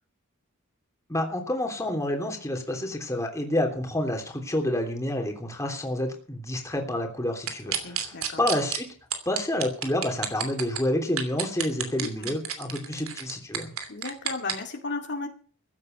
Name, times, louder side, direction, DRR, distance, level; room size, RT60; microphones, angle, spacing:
voice 1, 1.1-8.9 9.2-13.7, left 1 dB, 15° left, 2 dB, 3.2 m, -29 dB
sound 1, 7.5-8.8 9.1-10.8 11.2-14.5, right 9 dB, 70° right, 2.9 m, -29 dB
voice 2, 7.8-8.4 12.0-12.3 13.9-15.3, left 3 dB, 55° left, 3 dB, 2.2 m, -35 dB
15.0 x 10.5 x 6.7 m, 0.43 s
head